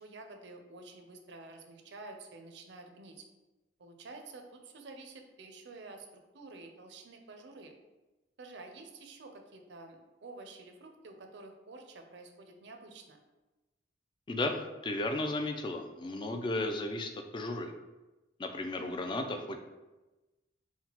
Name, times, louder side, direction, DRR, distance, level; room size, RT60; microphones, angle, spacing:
voice 1, 0.0-3.2 3.8-7.8 8.4-13.2, right 3 dB, 70° right, 4 dB, 0.5 m, -50 dB
voice 2, 14.3-17.7 18.4-19.6, left 2 dB, 25° left, 5 dB, 0.3 m, -34 dB
5.7 x 2.2 x 2.9 m, 1.1 s
head